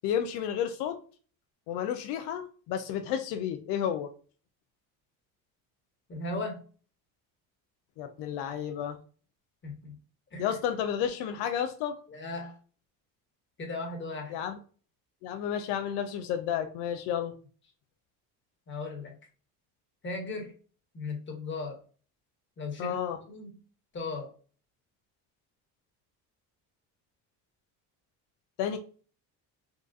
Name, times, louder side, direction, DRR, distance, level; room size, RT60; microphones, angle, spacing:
voice 1, 0.0-1.0 1.7-4.1 8.0-9.0 10.4-11.9 14.3-14.6 15.2-17.3 22.8-23.2 28.6-28.8, left 9 dB, 85° left, 7 dB, 0.5 m, -31 dB
voice 2, 6.1-6.6 9.6-9.9 10.3-10.6 12.1-12.6 13.6-14.3 18.7-19.1 20.0-20.5 20.9-21.8 22.6-23.0 23.3-23.5 23.9-24.3, left 3 dB, 30° left, 1 dB, 1.3 m, -36 dB
3.8 x 2.3 x 2.5 m, 0.40 s
cardioid pair, 110°, 40 cm